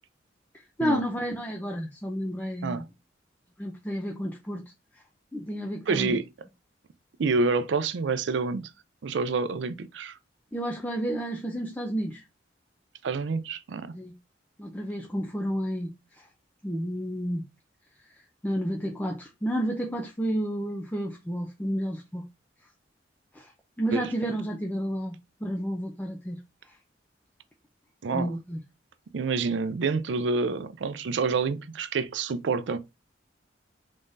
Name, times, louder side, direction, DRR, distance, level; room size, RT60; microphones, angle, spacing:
voice 1, 0.8-2.8 3.6-4.6 5.3-6.2 10.5-12.2 13.9-14.1 14.6-15.9 16.6-17.4 18.4-22.2 23.3-23.5 23.8-26.4 28.1-28.6, equal, 10° left, 0.5 m, -31 dB
voice 2, 5.9-6.3 7.2-8.7 9.0-10.2 13.0-13.9 23.9-24.0 28.0-28.3 29.1-32.8, right 4 dB, 75° right, 0.4 m, -27 dB
3.7 x 3.6 x 2.6 m
head